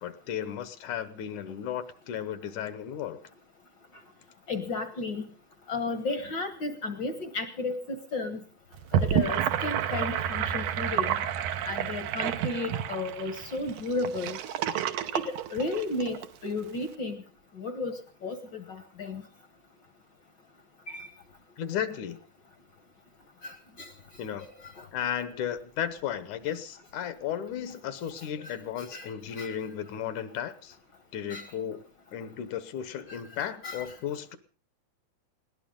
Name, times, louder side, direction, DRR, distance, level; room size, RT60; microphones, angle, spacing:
voice 1, 0.0-3.2 21.6-22.2 24.2-24.5 24.9-30.8 31.1-31.8 32.1-34.4, left 9 dB, 80° left, 12 dB, 2.5 m, -34 dB
voice 2, 4.5-5.2 5.7-8.4 8.9-11.2 11.6-14.4 15.1-15.2 15.5-16.2 16.4-17.2 17.6-17.9 18.2-19.2 20.9-21.1 23.4-23.5 23.8-23.9 28.9-29.1 29.4-29.5 31.3-31.4 33.1-33.2 33.6-33.8, left 3 dB, 55° left, 8 dB, 1.3 m, -33 dB
Gurgling / Sink (filling or washing), 8.7-16.3, right 10 dB, 80° right, 2.5 m, -30 dB
20.5 x 18.0 x 3.8 m, 0.38 s
omnidirectional pair, 3.5 m